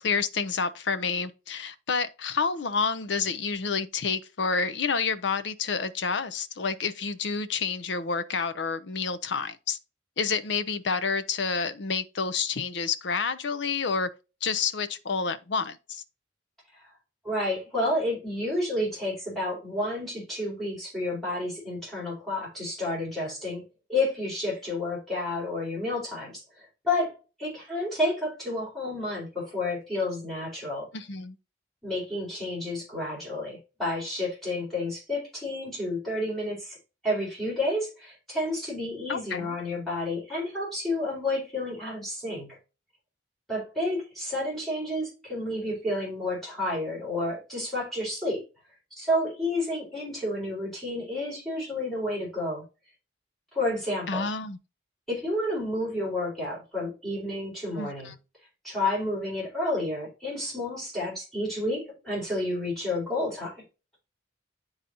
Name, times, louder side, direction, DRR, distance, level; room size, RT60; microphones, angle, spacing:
voice 1, 0.0-9.8 10.2-14.1 14.4-16.0 30.9-31.4 39.1-39.5 54.1-54.6 57.8-58.1, left 5 dB, 65° left, 0.6 m, -29 dB
voice 2, 17.2-23.6 23.9-30.9 31.8-36.8 37.0-42.6 43.5-48.4 48.9-52.6 53.5-54.3 55.1-58.1 58.6-63.5, left 1 dB, ahead, 4.1 m, -30 dB
10.0 x 4.0 x 2.8 m
head